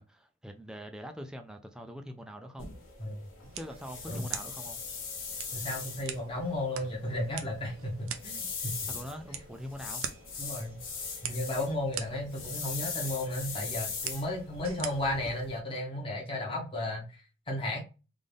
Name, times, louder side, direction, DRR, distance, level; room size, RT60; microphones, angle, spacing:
voice 1, 0.0-2.7 3.6-4.8 8.9-10.0, equal, 5° right, 0.4 m, -43 dB
sound 1, 2.6-15.6, left 5 dB, 90° left, 1.5 m, -41 dB
sound 2, 3.4-15.4, right 8 dB, 90° right, 0.6 m, -44 dB
voice 2, 5.5-8.8 10.4-10.8 11.2-17.8, left 1 dB, 25° left, 1.1 m, -34 dB
3.7 x 2.5 x 3.4 m
head